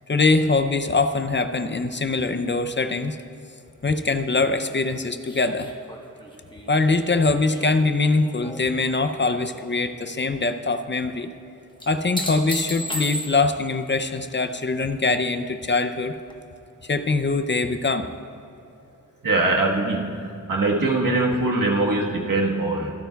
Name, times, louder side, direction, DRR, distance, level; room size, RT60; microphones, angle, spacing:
voice 1, 0.1-3.2 3.8-5.7 6.7-11.3 11.9-16.2 16.8-18.1, left 3 dB, 35° left, 10 dB, 0.5 m, -23 dB
sound 1, 5.3-8.7 9.1-9.7 11.8-13.7 16.3-16.4, left 1 dB, 15° left, 1.1 m, -35 dB
voice 2, 19.2-22.9, right 2 dB, 75° right, -1 dB, 1.4 m, -22 dB
25.5 x 9.0 x 2.3 m, 2.6 s
wide cardioid pair, 75°, 33 cm